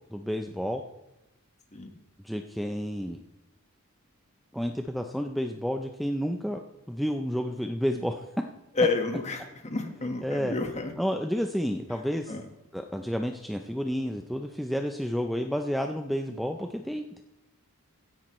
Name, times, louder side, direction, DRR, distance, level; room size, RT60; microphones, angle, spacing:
voice 1, 0.1-0.8 2.2-3.2 4.5-6.6 6.9-8.2 10.2-10.5 11.0-12.3 12.7-17.2, equal, ahead, 4 dB, 0.5 m, -30 dB
voice 2, 8.7-10.9 12.3-12.4, left 3 dB, 30° left, 5 dB, 1.4 m, -29 dB
16.0 x 10.5 x 3.1 m, 0.97 s
head